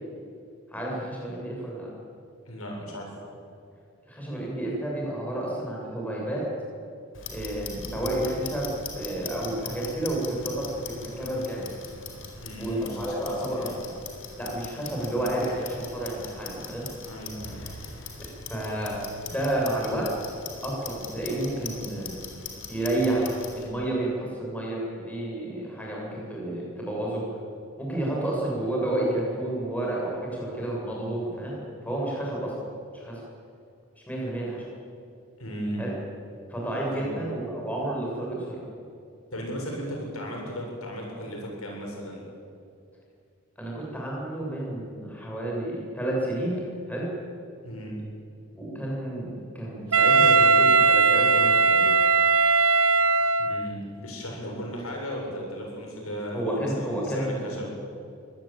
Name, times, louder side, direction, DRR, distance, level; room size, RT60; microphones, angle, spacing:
voice 1, 0.7-1.9 4.1-6.5 7.3-11.7 12.6-13.7 14.4-16.9 18.5-19.0 19.3-20.1 20.6-22.1 22.7-27.3 27.8-31.6 31.8-32.6 32.9-33.2 34.1-34.6 35.8-35.9 36.5-38.6 43.6-46.6 46.9-47.1 48.5-51.9 56.3-57.6, right 1 dB, 5° left, -3 dB, 7.5 m, -30 dB
voice 2, 2.5-3.2 12.4-13.9 17.0-17.6 35.4-35.9 36.9-37.2 39.3-42.2 47.6-48.0 53.4-57.8, equal, 80° left, 0 dB, 7.4 m, -35 dB
Clock, 7.1-23.6, left 4 dB, 60° left, 4.4 m, -41 dB
Wind instrument woodwind instrument, 49.9-53.8, right 4 dB, 80° right, 0.7 m, -19 dB
24.0 x 18.0 x 9.1 m, 2.4 s
head